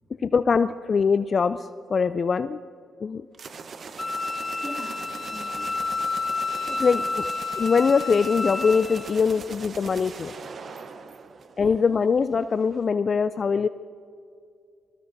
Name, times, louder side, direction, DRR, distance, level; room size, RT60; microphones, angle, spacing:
voice 1, 0.2-2.6 3.0-3.2 6.8-7.2 7.6-10.3 11.6-13.7, left 5 dB, 50° left, 13 dB, 0.3 m, -22 dB
sound 1, 3.3-12.0, right 5 dB, 55° right, 0.8 m, -41 dB
voice 2, 3.8-6.0 6.6-7.1 11.6-11.8, equal, 5° right, 0 dB, 2.7 m, -43 dB
Wind instrument woodwind instrument, 4.0-9.1, left 3 dB, 25° left, 1.4 m, -30 dB
22.0 x 20.5 x 2.6 m, 2.4 s
hypercardioid pair, 45°, 0 cm